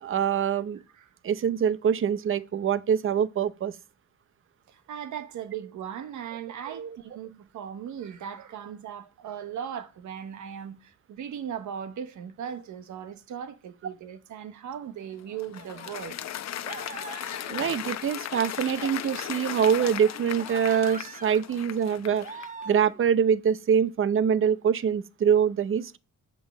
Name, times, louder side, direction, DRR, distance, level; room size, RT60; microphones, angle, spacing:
voice 1, 0.0-0.8 1.2-3.8 6.7-7.0 17.5-22.3 22.7-26.0, right 8 dB, 45° right, 0.7 m, -24 dB
voice 2, 4.7-16.2, right 8 dB, 75° right, 1.2 m, -38 dB
Applause, 15.0-22.6, left 11 dB, 60° left, 0.9 m, -37 dB
sound 1, 15.5-16.1 16.6-17.9 18.3-19.6 20.2-21.5 22.2-23.0, right 4 dB, 25° right, 1.2 m, -43 dB
7.6 x 5.3 x 7.2 m
cardioid pair, 90°, 30 cm